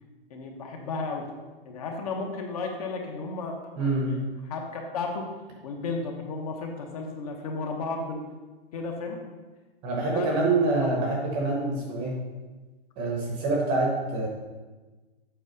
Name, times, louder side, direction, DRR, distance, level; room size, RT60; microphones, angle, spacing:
voice 1, 0.3-1.3 1.6-5.3 5.6-8.2 8.7-9.2 10.1-11.1, left 3 dB, 35° left, 2 dB, 1.1 m, -34 dB
voice 2, 3.8-4.2 9.8-12.2 13.0-14.3, right 2 dB, 15° right, -1 dB, 0.9 m, -26 dB
8.1 x 4.8 x 5.4 m, 1.3 s
hypercardioid pair, 165°, 31 cm